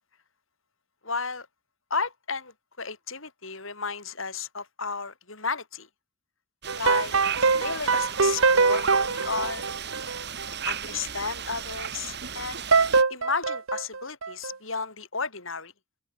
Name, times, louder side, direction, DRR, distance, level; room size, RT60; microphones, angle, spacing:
voice 1, 1.0-1.5 1.9-5.9 6.7-7.1 7.6-9.7 10.5-12.6 13.1-15.7, left 4 dB, 65° left, 6.5 m, -33 dB
sound 1, 6.6-13.0, right 7 dB, 55° right, 8.0 m, -35 dB
sound 2, 6.7-10.5 12.7-14.5, right 4 dB, 70° right, 1.4 m, -23 dB
open air
head